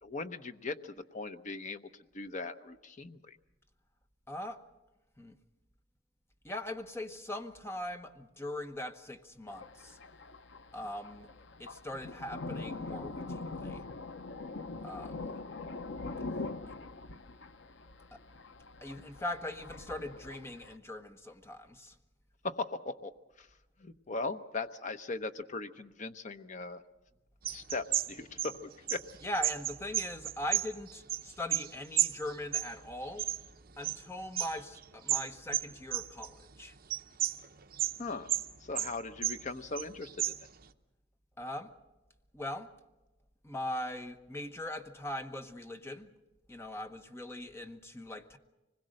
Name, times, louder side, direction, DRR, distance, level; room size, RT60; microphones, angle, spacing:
voice 1, 0.0-3.4 22.4-23.1 23.4-23.5 23.8-26.8 27.5-29.0 38.0-38.3 38.6-40.3, left 3 dB, 40° left, 0.9 m, -39 dB
voice 2, 4.3-4.6 5.2-5.4 6.4-10.0 10.7-11.3 11.6-13.8 14.8-15.3 16.7-16.8 18.1-18.2 18.8-21.9 29.2-33.3 33.8-36.7 41.4-41.7 42.3-42.7 43.4-46.1 46.5-48.4, left 1 dB, 15° left, 1.1 m, -40 dB
Thunder, 9.5-20.8, left 3 dB, 80° left, 0.8 m, -43 dB
sound 1, 27.4-31.7 32.0-34.0 34.3-36.5 36.9-38.0 38.3-39.5 39.8-40.6, right 12 dB, 50° right, 0.8 m, -33 dB
25.0 x 21.0 x 6.5 m
head